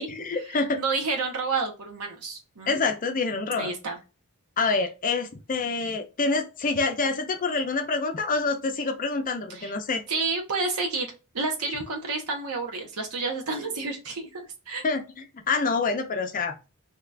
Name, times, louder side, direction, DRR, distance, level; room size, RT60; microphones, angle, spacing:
voice 1, 0.0-0.8 2.7-3.7 4.6-10.0 14.8-16.5, left 4 dB, 40° left, 6 dB, 0.5 m, -27 dB
voice 2, 0.8-2.8 3.6-4.0 9.5-9.7 10.1-14.8, right 3 dB, 85° right, 2 dB, 0.9 m, -30 dB
2.9 x 2.4 x 3.3 m, 0.29 s
head